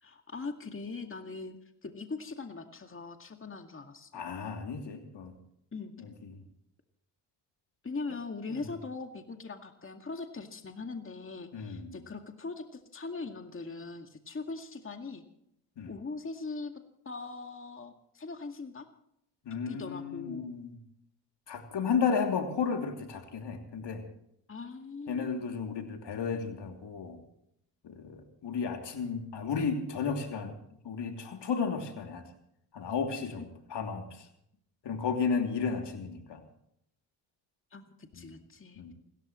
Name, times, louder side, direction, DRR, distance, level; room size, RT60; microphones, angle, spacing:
voice 1, 0.0-1.6 1.8-4.3 5.7-5.9 7.8-15.2 15.9-16.7 17.1-18.9 19.7-20.5 21.8-21.9 24.5-25.5 33.4-33.5 37.7-38.9, left 3 dB, 25° left, 5 dB, 2.1 m, -41 dB
voice 2, 4.1-5.3 6.0-6.4 8.5-8.6 11.5-12.0 15.8-15.9 19.4-20.7 21.5-24.0 25.1-27.2 27.8-30.5 30.8-32.3 32.7-34.3 34.8-36.4 38.2-38.4 38.8-38.9, left 5 dB, 60° left, 4 dB, 3.0 m, -33 dB
29.0 x 14.0 x 3.2 m, 0.74 s
hypercardioid pair, 50°, 48 cm